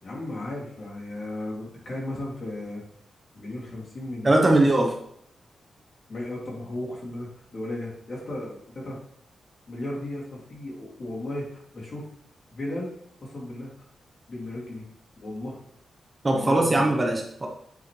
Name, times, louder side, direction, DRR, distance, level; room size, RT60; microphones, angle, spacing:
voice 1, 0.0-2.8 3.3-4.9 6.1-9.0 9.7-12.1 12.5-12.9 13.2-13.7 14.3-14.9 15.2-15.6 16.3-17.0, left 1 dB, 45° left, -5 dB, 2.9 m, -35 dB
voice 2, 4.2-4.9 16.2-17.5, right 2 dB, 25° right, 1 dB, 1.0 m, -20 dB
8.3 x 4.9 x 3.3 m, 0.68 s
wide cardioid pair, 130°, 0 cm